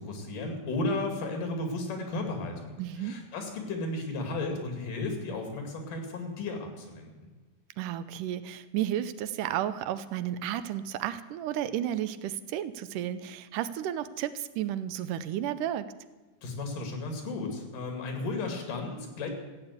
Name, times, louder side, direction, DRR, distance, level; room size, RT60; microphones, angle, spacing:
voice 1, 0.0-7.3 16.4-19.3, left 2 dB, 80° left, 3 dB, 3.9 m, -34 dB
voice 2, 2.8-3.2 7.8-15.9, right 11 dB, 80° right, 13 dB, 2.2 m, -32 dB
14.5 x 8.8 x 8.2 m, 1.2 s
omnidirectional pair, 3.7 m